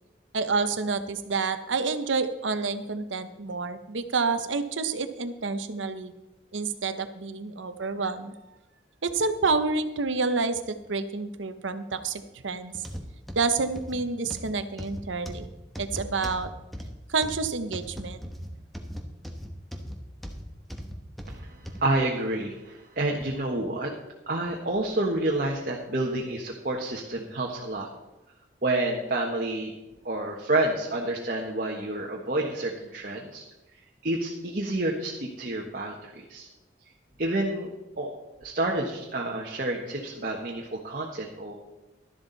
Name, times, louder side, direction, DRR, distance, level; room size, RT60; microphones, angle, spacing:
voice 1, 0.3-6.1 6.5-8.3 9.0-12.8 13.3-15.5 15.8-16.5 17.1-18.2, right 4 dB, 85° right, 10 dB, 0.9 m, -28 dB
sound 1, 12.7-21.9 22.4-22.5 23.2-23.3, equal, ahead, 1.0 m, -39 dB
voice 2, 21.3-23.9 24.3-27.9 28.6-29.7 30.0-33.4 34.0-36.5 37.2-41.5, right 2 dB, 50° right, -1 dB, 1.4 m, -29 dB
12.5 x 11.5 x 4.0 m, 1.0 s
head